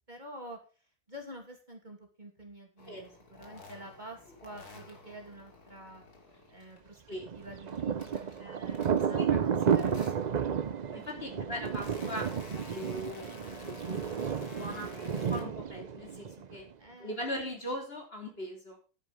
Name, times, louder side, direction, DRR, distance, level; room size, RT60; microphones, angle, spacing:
voice 1, 0.1-0.6 1.1-6.0 6.5-7.0 7.3-10.4 11.2-11.5 16.8-17.2, right 1 dB, 30° right, 2 dB, 2.7 m, -48 dB
sound 1, 2.8-6.9 7.3-9.3 9.6-10.5 11.1-15.4, left 3 dB, 80° left, 3.2 m, -51 dB
Thunder, 7.2-16.7, right 7 dB, 65° right, 0.4 m, -32 dB
voice 2, 8.4-10.0 10.9-16.6 17.0-18.8, equal, 40° left, 1 dB, 3.5 m, -41 dB
11.0 x 9.8 x 5.4 m, 0.36 s
omnidirectional pair, 1.6 m